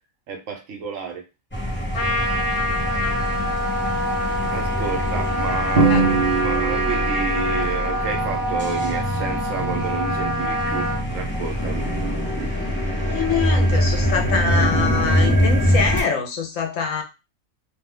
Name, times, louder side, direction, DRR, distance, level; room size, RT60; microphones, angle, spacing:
voice 1, 0.3-1.3 4.5-11.9, right 5 dB, 70° right, 1.0 m, -30 dB
sound 1, 1.5-16.0, equal, 10° left, 0.6 m, -24 dB
Trumpet, 1.9-11.0, left 1 dB, 45° left, 1.2 m, -27 dB
Drum, 5.8-7.5, right 4 dB, 50° right, 0.8 m, -21 dB
voice 2, 13.1-17.0, left 5 dB, 70° left, 1.0 m, -24 dB
2.7 x 2.2 x 3.5 m
omnidirectional pair, 1.5 m